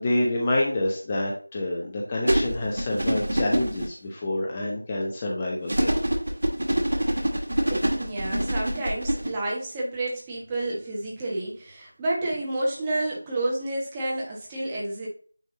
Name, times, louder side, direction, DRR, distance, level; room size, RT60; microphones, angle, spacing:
voice 1, 0.0-6.0, left 1 dB, 15° left, -2 dB, 0.8 m, -27 dB
sound 1, 2.3-3.9 5.7-9.3, right 1 dB, 60° right, 2.0 m, -25 dB
voice 2, 7.7-15.1, right 2 dB, 10° right, -4 dB, 1.3 m, -30 dB
9.1 x 3.6 x 3.8 m, 0.44 s
figure-of-eight pair, 170°, 0 cm